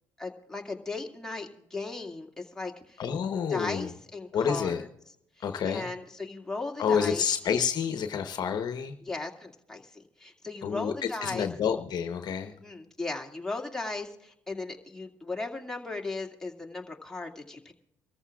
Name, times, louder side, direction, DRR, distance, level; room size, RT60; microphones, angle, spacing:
voice 1, 0.2-3.0 3.5-4.9 5.7-7.3 9.0-11.5 12.6-17.7, left 3 dB, 5° left, 1 dB, 2.2 m, -37 dB
voice 2, 3.0-3.9 4.3-4.8 5.4-5.9 6.8-8.9 10.6-12.5, left 7 dB, 55° left, 7 dB, 1.0 m, -29 dB
25.5 x 14.0 x 2.4 m, 0.76 s
supercardioid pair, 65°, 9 cm